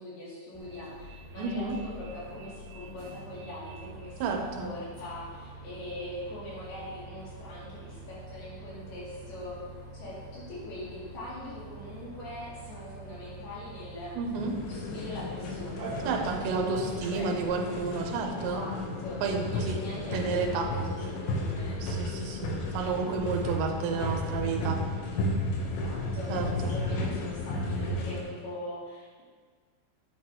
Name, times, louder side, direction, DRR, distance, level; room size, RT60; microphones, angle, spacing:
voice 1, 0.0-9.6 9.9-14.1 14.6-17.3 18.3-19.2 19.5-21.8 22.2-22.5 25.6-26.3 26.6-29.2, left 1 dB, 55° left, -8 dB, 4.7 m, -42 dB
Bus, 0.5-17.4, right 2 dB, 20° left, 0.5 m, -46 dB
voice 2, 1.4-1.8 4.2-4.7 14.2-14.5 16.1-18.7 19.2-19.8 20.1-20.7 21.8-24.8 26.3-26.7, right 4 dB, 75° right, 2 dB, 3.1 m, -31 dB
sound 1, 14.3-28.2, left 1 dB, 75° left, 3.4 m, -33 dB
sound 2, 14.3-21.8, right 2 dB, 45° right, 2.4 m, -46 dB
10.5 x 9.5 x 3.1 m, 1.5 s
omnidirectional pair, 5.4 m